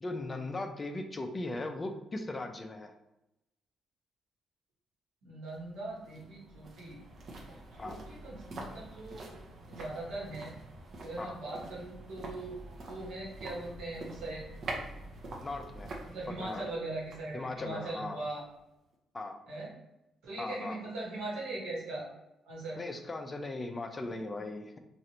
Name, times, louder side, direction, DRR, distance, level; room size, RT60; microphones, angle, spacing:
voice 1, 0.0-2.9 7.8-8.0 11.2-11.4 15.4-15.9 16.3-16.6 17.3-18.3 19.1-19.4 20.4-20.8 22.8-24.8, left 2 dB, 25° left, 6 dB, 0.4 m, -38 dB
voice 2, 5.2-7.0 7.5-9.3 9.7-10.5 11.0-14.4 16.0-18.4 19.5-19.7 20.2-22.1 22.4-22.8, right 2 dB, 90° right, -5 dB, 1.3 m, -40 dB
sound 1, 5.5-18.6 18.9-19.0, right 2 dB, 55° right, 0.7 m, -46 dB
3.1 x 2.5 x 2.8 m, 0.91 s
cardioid pair, 90°, 0 cm